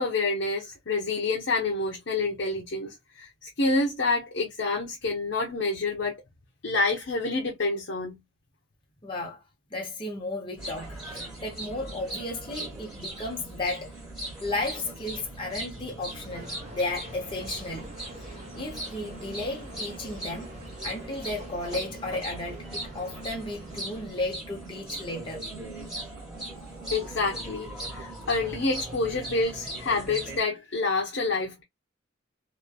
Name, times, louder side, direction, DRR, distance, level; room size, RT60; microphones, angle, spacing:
voice 1, 0.0-6.2 6.6-8.2 26.9-31.6, left 3 dB, 60° left, 0.8 m, -28 dB
voice 2, 9.0-9.4 9.7-13.9 14.4-17.9 18.2-20.5 20.8-25.4, left 2 dB, 25° left, 0.8 m, -34 dB
sound 1, 10.6-30.4, right 1 dB, 5° right, 1.2 m, -39 dB
sound 2, 16.3-24.1, left 1 dB, 35° right, 1.0 m, -47 dB
3.1 x 2.2 x 2.2 m
head